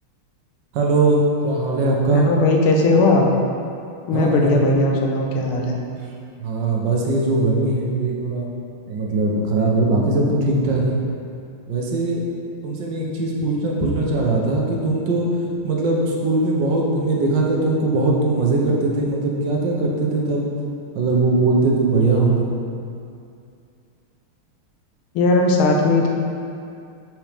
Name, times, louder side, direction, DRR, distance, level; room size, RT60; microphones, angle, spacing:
voice 1, 0.7-2.3 4.1-4.8 6.4-8.5 8.9-11.0 11.7-12.2 12.6-15.3 15.6-20.5 20.9-22.5, right 2 dB, 65° right, -2 dB, 1.4 m, -20 dB
voice 2, 2.1-3.3 4.1-5.8 25.1-26.1, left 2 dB, 85° left, 1 dB, 1.6 m, -18 dB
6.1 x 6.1 x 3.4 m, 2.5 s
omnidirectional pair, 2.3 m